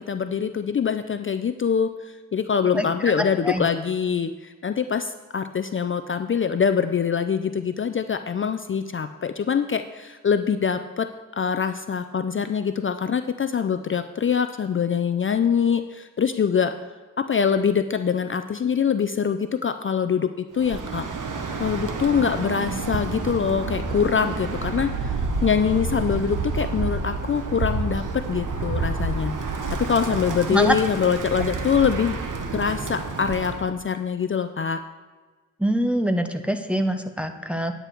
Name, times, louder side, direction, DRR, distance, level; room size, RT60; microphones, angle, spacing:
voice 1, 0.1-11.1 11.3-16.7 17.2-20.3 20.5-21.1 21.6-25.1 25.4-29.3 29.8-32.2 32.5-34.8, left 7 dB, 40° left, 9 dB, 0.4 m, -24 dB
Bird, 20.6-33.7, right 3 dB, 80° right, 1.0 m, -29 dB
voice 2, 35.6-37.7, equal, 5° right, 6 dB, 0.6 m, -24 dB
9.1 x 8.9 x 4.5 m, 1.4 s
wide cardioid pair, 135°, 31 cm